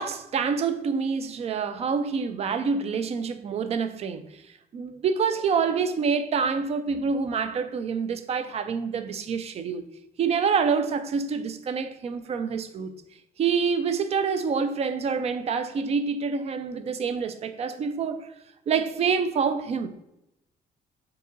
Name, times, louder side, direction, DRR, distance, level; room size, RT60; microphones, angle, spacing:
voice 1, 0.0-4.4 4.7-9.8 10.2-12.9 13.4-18.3 18.7-19.9, right 5 dB, 40° right, 0.4 m, -27 dB
3.7 x 2.8 x 3.7 m
cardioid pair, 110°, 17 cm